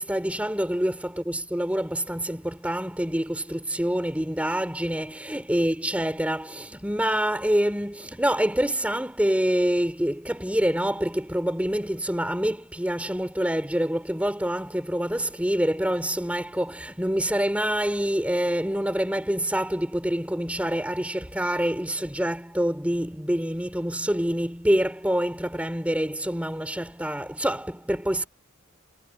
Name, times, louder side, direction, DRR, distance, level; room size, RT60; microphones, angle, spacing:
voice 1, 0.0-28.3, equal, 5° right, 3.8 m, -26 dB
head